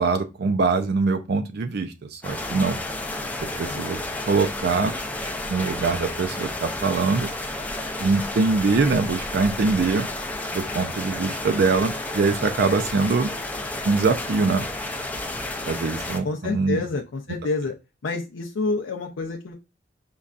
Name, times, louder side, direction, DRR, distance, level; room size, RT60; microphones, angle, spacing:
voice 1, 0.0-2.8 3.4-4.9 5.5-7.3 8.0-10.1 10.5-13.3 13.8-14.7 15.7-16.8, right 4 dB, 55° right, 0.4 m, -23 dB
sound 1, 2.2-16.2, left 2 dB, 10° left, 0.4 m, -31 dB
voice 2, 3.6-3.9 16.2-17.7 18.0-19.5, left 3 dB, 80° left, 0.5 m, -28 dB
5.2 x 2.3 x 2.4 m
head